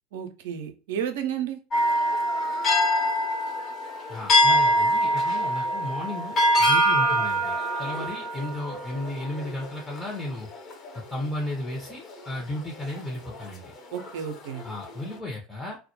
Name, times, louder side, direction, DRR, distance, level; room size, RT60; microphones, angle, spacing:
voice 1, 0.1-1.6 13.9-14.6, right 9 dB, 65° right, 8 dB, 0.4 m, -32 dB
sound 1, 1.7-11.2 11.7-12.3 12.8-13.5 13.9-15.1, equal, 40° left, 0.9 m, -24 dB
voice 2, 4.1-10.5 10.9-13.7 14.6-15.8, left 1 dB, 10° left, -2 dB, 0.6 m, -34 dB
2.1 x 2.0 x 2.9 m, 0.36 s
figure-of-eight pair, 75°, 0 cm